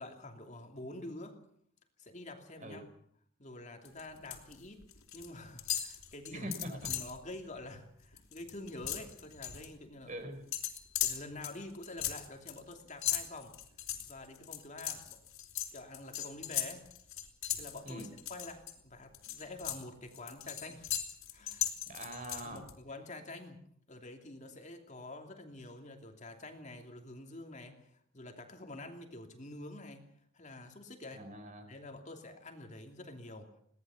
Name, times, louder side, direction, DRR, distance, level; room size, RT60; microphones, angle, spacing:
voice 1, 0.0-1.4 2.0-2.9 3.4-4.8 5.1-10.1 11.0-13.6 14.1-15.2 15.7-16.8 17.6-21.0 21.3-21.7 22.4-23.6 23.9-30.0 30.3-31.2 31.7-33.5, left 2 dB, 35° left, 4 dB, 2.8 m, -47 dB
sound 1, 3.8-4.5 4.8-5.3 5.6-7.2 7.6-7.8 8.0-9.7 10.5-18.7 19.1-22.7, left 12 dB, 75° left, 4.1 m, -38 dB
voice 2, 6.3-6.9 10.0-10.4 17.8-18.1 21.9-22.6 31.1-31.7, right 1 dB, 35° right, 8 dB, 4.2 m, -43 dB
22.5 x 18.5 x 7.1 m, 0.63 s
head